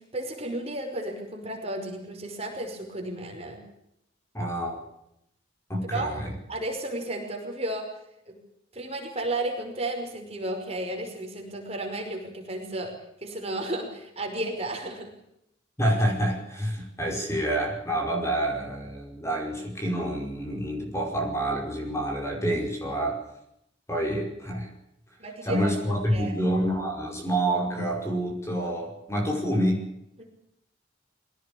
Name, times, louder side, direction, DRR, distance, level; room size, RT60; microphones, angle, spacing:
voice 1, 0.0-3.6 5.9-6.1 6.5-7.9 8.3-8.4 8.7-12.9 13.2-15.1 25.2-26.4 30.2-30.3, right 1 dB, 35° right, 2 dB, 5.4 m, -33 dB
voice 2, 4.3-4.8 5.7-6.3 15.8-23.2 23.9-24.7 25.4-29.8, right 1 dB, 15° left, 1 dB, 5.2 m, -27 dB
22.5 x 17.5 x 8.7 m, 0.79 s
head